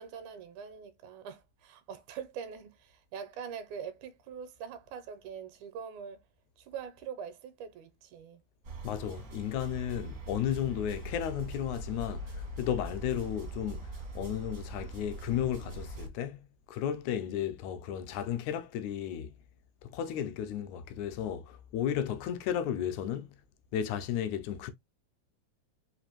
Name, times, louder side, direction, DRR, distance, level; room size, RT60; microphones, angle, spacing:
voice 1, 0.0-6.2 6.6-8.4, right 7 dB, 85° right, 2.1 m, -43 dB
sound 1, 8.6-16.1, right 1 dB, 60° right, 0.8 m, -42 dB
voice 2, 8.8-19.4 19.8-23.4 23.7-24.7, left 10 dB, 80° left, 1.9 m, -34 dB
4.9 x 2.5 x 2.8 m
omnidirectional pair, 3.4 m